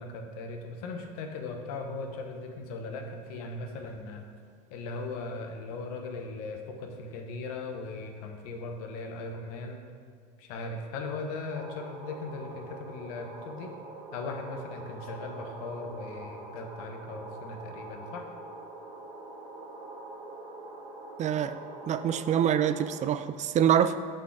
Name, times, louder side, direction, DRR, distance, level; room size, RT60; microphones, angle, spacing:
voice 1, 0.0-4.3 4.7-9.8 10.4-13.7 14.1-18.2, left 3 dB, 70° left, 4 dB, 1.1 m, -38 dB
sound 1, 11.5-23.0, right 2 dB, 60° right, 1.9 m, -44 dB
voice 2, 21.2-21.6 21.9-24.0, right 9 dB, 40° right, 12 dB, 0.4 m, -25 dB
6.6 x 6.2 x 4.8 m, 2.1 s
hypercardioid pair, 75°, 20 cm